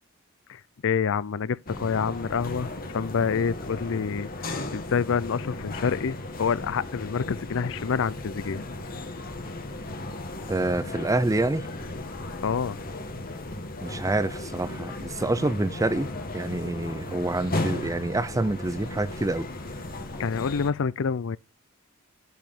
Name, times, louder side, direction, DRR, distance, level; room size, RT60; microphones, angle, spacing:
voice 1, 0.5-8.6 12.4-12.8 20.2-21.4, left 6 dB, 60° left, 0.5 m, -27 dB
sound 1, 1.7-20.7, left 2 dB, 45° left, 1.8 m, -36 dB
voice 2, 10.5-11.7 13.8-19.5, right 2 dB, 15° right, 0.6 m, -27 dB
12.0 x 5.0 x 7.2 m
head